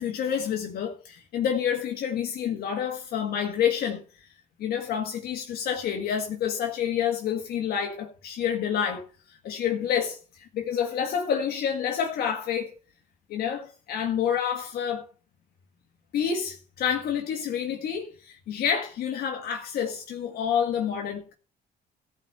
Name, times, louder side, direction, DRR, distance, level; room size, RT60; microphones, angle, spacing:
voice 1, 0.0-4.3 4.6-12.8 13.3-15.0 16.1-21.3, left 8 dB, 65° left, 1.7 m, -28 dB
14.5 x 5.1 x 6.8 m
cardioid pair, 110°, 17 cm